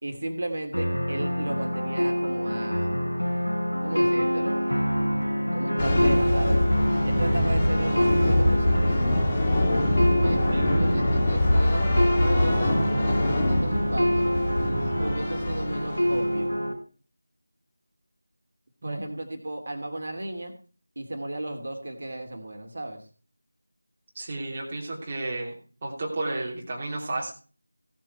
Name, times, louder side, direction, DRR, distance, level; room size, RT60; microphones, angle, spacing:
voice 1, 0.0-3.0 3.8-4.6 5.5-6.6 7.0-8.9 10.2-14.3 15.0-16.5 18.8-20.5 21.0-23.0, right 1 dB, 45° right, 4 dB, 2.8 m, -34 dB
sound 1, 0.7-16.7, equal, 85° left, 3.8 m, -26 dB
sound 2, 5.8-16.5, left 1 dB, 20° left, 3.1 m, -24 dB
voice 2, 10.2-10.6 18.8-19.0 24.1-25.6 25.8-27.3, right 2 dB, 25° right, -2 dB, 2.8 m, -32 dB
17.0 x 7.5 x 4.7 m, 0.39 s
figure-of-eight pair, 170°, 0 cm